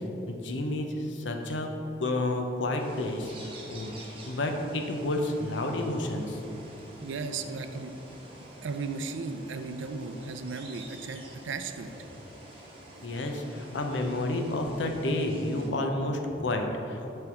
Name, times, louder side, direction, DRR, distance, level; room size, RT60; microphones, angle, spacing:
voice 1, 0.3-1.7 2.0-3.3 3.7-3.9 4.3-6.4 13.0-17.1, left 1 dB, 75° left, 4 dB, 0.7 m, -30 dB
sound 1, 2.8-15.7, right 1 dB, 30° right, 1.1 m, -48 dB
voice 2, 7.0-7.9 8.6-11.9, right 4 dB, 85° right, 8 dB, 0.4 m, -35 dB
6.9 x 3.4 x 5.9 m, 2.9 s
head